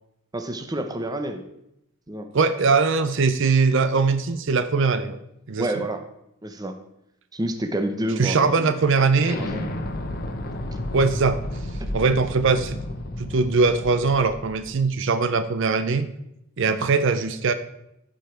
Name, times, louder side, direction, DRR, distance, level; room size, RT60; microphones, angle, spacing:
voice 1, 0.3-1.4 2.1-2.3 5.6-6.0 6.4-6.7 7.3-8.7 9.4-9.7 10.7-10.8 11.8-11.9, right 1 dB, 20° right, 7 dB, 0.7 m, -28 dB
voice 2, 2.3-5.2 5.5-5.7 8.2-9.4 10.9-11.4 11.9-12.8 13.2-16.1 16.6-17.5, right 4 dB, 60° right, 11 dB, 0.5 m, -21 dB
Explosion, 9.2-14.7, left 1 dB, 45° left, 0.9 m, -32 dB
14.5 x 5.2 x 4.4 m, 0.82 s
head